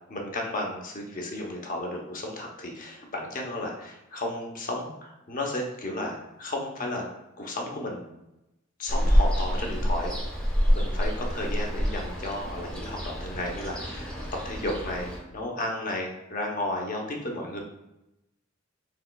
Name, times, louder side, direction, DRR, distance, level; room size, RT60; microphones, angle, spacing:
voice 1, 0.1-7.1 7.4-8.1 8.8-10.1 10.7-14.2 14.4-17.6, left 1 dB, 45° left, 0 dB, 0.8 m, -33 dB
Ocean, 8.9-15.2, equal, 5° left, 0.8 m, -27 dB
4.7 x 4.0 x 2.3 m, 0.91 s
head